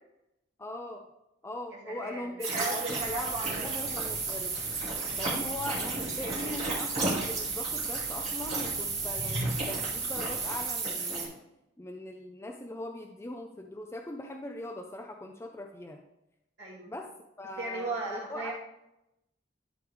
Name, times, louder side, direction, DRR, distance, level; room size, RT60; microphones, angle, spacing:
voice 1, 0.6-1.0 1.4-4.6 5.2-11.4 11.8-16.0 16.9-17.1 17.4-18.5, left 1 dB, 15° left, 3 dB, 0.4 m, -40 dB
voice 2, 1.7-3.6 5.1-5.5 6.2-6.7 16.6-16.9 17.6-18.5, right 3 dB, 65° right, -4 dB, 2.8 m, -37 dB
sound 1, 2.4-11.2, right 4 dB, 35° right, 2.5 m, -33 dB
sound 2, 3.0-10.6, equal, 65° left, 1.2 m, -42 dB
12.0 x 4.7 x 3.4 m, 0.89 s
head